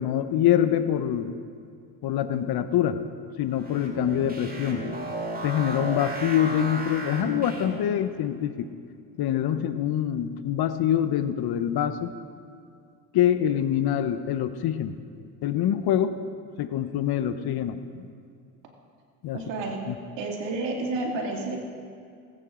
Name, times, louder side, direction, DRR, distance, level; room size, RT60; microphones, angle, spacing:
voice 1, 0.0-1.3 2.0-3.0 3.4-4.8 5.4-8.7 9.2-12.1 13.1-15.0 15.4-16.2 16.6-18.1 19.2-19.4 19.9-20.0, left 10 dB, 55° left, 11 dB, 0.9 m, -25 dB
sound 1, 3.5-8.0, right 1 dB, 20° right, 2.4 m, -34 dB
voice 2, 19.3-19.8 20.2-21.6, right 2 dB, 70° right, 0 dB, 2.6 m, -30 dB
19.5 x 9.0 x 3.8 m, 2.3 s
supercardioid pair, 70°, 45 cm